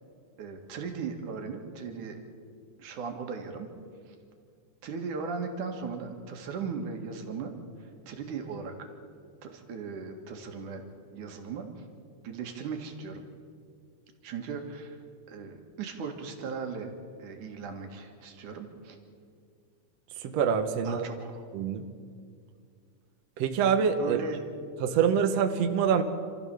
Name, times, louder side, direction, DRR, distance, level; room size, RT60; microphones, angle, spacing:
voice 1, 0.4-2.2 2.8-3.7 4.1-4.2 4.8-8.9 9.4-10.8 11.1-11.8 12.2-13.2 14.2-15.0 15.3-16.9 17.2-19.0 20.8-21.5 24.0-24.4, right 5 dB, 85° right, 4 dB, 3.3 m, -37 dB
voice 2, 20.2-21.0 21.5-21.8 23.4-24.2 24.8-26.0, right 7 dB, 65° right, 6 dB, 2.1 m, -25 dB
27.5 x 14.0 x 7.1 m, 2.2 s
omnidirectional pair, 3.5 m